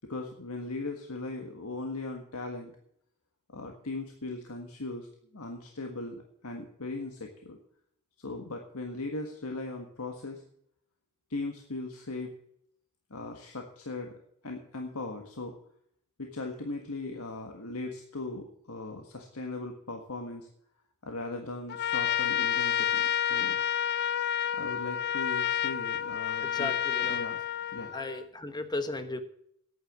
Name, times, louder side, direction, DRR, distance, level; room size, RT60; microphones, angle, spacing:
voice 1, 0.0-2.7 3.5-5.1 5.3-7.6 8.2-10.4 11.3-12.3 13.1-15.5 16.2-20.5 21.0-23.6 24.5-26.7 27.0-27.4 27.7-27.9, left 2 dB, 80° left, 3 dB, 1.6 m, -38 dB
Trumpet, 21.7-28.2, left 10 dB, 50° left, 0.4 m, -29 dB
voice 2, 26.4-27.2 27.9-29.2, left 2 dB, 20° left, 9 dB, 1.2 m, -35 dB
10.5 x 9.1 x 7.3 m, 0.68 s
head